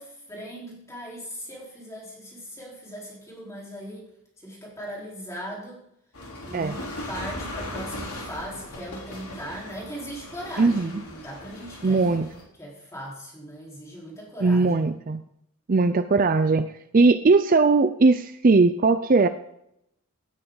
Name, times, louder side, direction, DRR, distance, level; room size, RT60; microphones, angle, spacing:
voice 1, 0.0-4.1 4.4-5.8 6.4-12.0 12.6-14.9, equal, 15° left, -4 dB, 4.2 m, -39 dB
sound 1, 6.1-12.4, left 1 dB, 75° left, 3.7 m, -38 dB
voice 2, 10.6-11.0 11.8-12.3 14.4-15.2 15.7-19.3, right 3 dB, 40° right, 11 dB, 0.5 m, -19 dB
17.0 x 9.6 x 4.0 m, 0.77 s
head